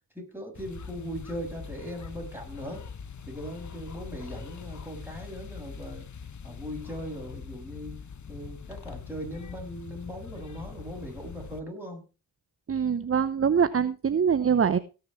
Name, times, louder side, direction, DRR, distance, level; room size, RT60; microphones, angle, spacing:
voice 1, 0.2-2.8 3.3-6.1 6.4-8.0 8.3-12.0, equal, 5° right, 1 dB, 6.9 m, -39 dB
sound 1, 0.5-11.6, left 6 dB, 55° left, 1.1 m, -43 dB
voice 2, 12.7-14.8, right 7 dB, 40° right, 14 dB, 0.8 m, -24 dB
17.5 x 6.8 x 4.6 m, 0.31 s
cardioid pair, 60°, 35 cm